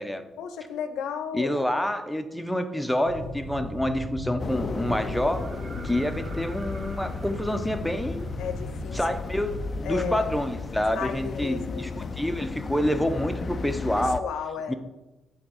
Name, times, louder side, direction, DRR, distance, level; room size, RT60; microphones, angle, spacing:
voice 1, 0.4-1.7 8.4-9.0 9.8-10.3 10.9-12.1 14.0-14.7, left 7 dB, 80° left, 9 dB, 0.8 m, -34 dB
voice 2, 1.3-5.5 5.8-8.2 8.9-14.2 14.7-14.8, left 1 dB, 5° left, 7 dB, 0.8 m, -27 dB
sound 1, 3.1-9.1, equal, 40° right, 2.2 m, -38 dB
sound 2, 4.4-14.2, left 4 dB, 40° left, 0.4 m, -35 dB
sound 3, 5.3-9.1 11.0-11.1, right 3 dB, 60° right, 1.5 m, -48 dB
8.5 x 3.6 x 6.5 m, 1.0 s
cardioid pair, 90°, 0 cm